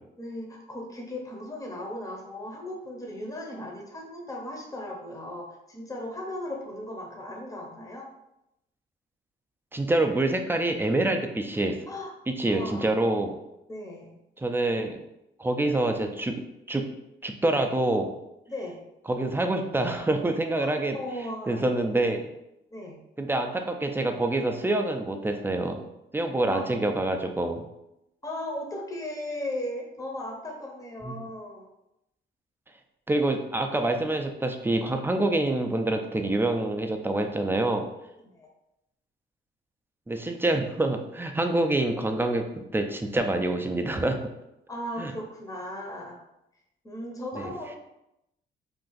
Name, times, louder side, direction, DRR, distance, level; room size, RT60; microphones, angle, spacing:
voice 1, 0.2-8.1 11.9-12.1 12.4-13.0 13.7-14.2 18.5-18.8 20.6-21.7 22.7-23.0 26.5-26.7 28.2-31.7 38.2-38.5 44.7-46.2 46.8-47.8, left 1 dB, 15° left, -1 dB, 0.7 m, -37 dB
voice 2, 9.7-11.8 12.4-13.3 14.4-15.0 15.4-16.4 16.7-16.9 17.2-18.1 19.1-21.0 21.5-22.3 23.2-25.9 26.1-27.6 31.0-31.2 33.1-37.9 40.1-44.2 45.0-45.1, right 2 dB, 10° right, 4 dB, 0.4 m, -26 dB
2.6 x 2.3 x 3.9 m, 0.85 s
cardioid pair, 90°, 20 cm